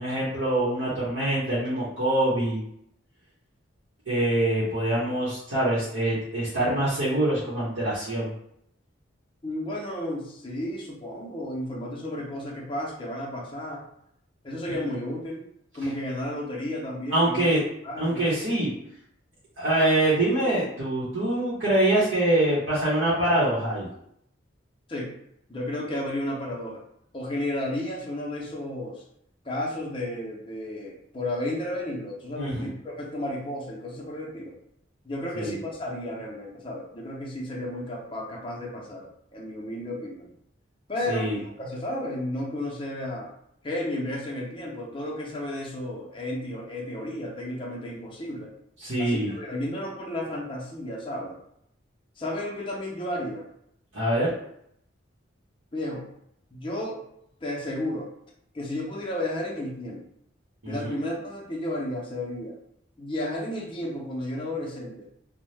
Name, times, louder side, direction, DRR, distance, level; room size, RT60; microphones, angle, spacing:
voice 1, 0.0-2.6 4.1-8.3 17.1-17.6 18.0-18.7 19.6-23.9 32.4-32.7 35.3-35.6 41.1-41.4 48.8-49.3 53.9-54.3 60.6-60.9, right 1 dB, 80° right, -9 dB, 0.8 m, -24 dB
voice 2, 9.4-13.8 14.4-15.4 15.7-17.5 17.8-18.3 24.9-25.1 25.5-26.8 27.1-29.0 29.4-34.6 35.0-40.3 40.9-41.3 41.6-43.3 43.6-48.5 49.0-51.4 52.2-53.5 55.7-56.0 56.5-57.0 57.4-58.1 58.5-60.0 60.7-62.5 63.0-65.1, left 1 dB, 25° left, -2 dB, 0.6 m, -33 dB
2.7 x 2.1 x 3.2 m, 0.74 s
head